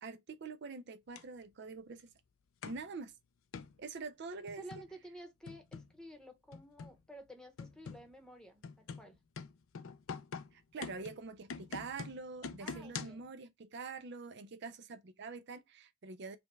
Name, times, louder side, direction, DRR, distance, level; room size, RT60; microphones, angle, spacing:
voice 1, 0.0-2.1 2.7-3.1 3.8-4.6 10.5-16.4, right 4 dB, 55° right, 0.4 m, -45 dB
sound 1, 1.2-1.3 2.6-2.9 3.5-3.8 4.5-4.9 5.5-6.0 6.5-7.0 7.6-8.1 8.6-13.3, left 5 dB, 80° left, 0.5 m, -45 dB
voice 2, 4.6-9.2 10.7-11.1 12.6-13.2, right 1 dB, 5° left, 0.9 m, -52 dB
5.0 x 2.2 x 3.2 m
head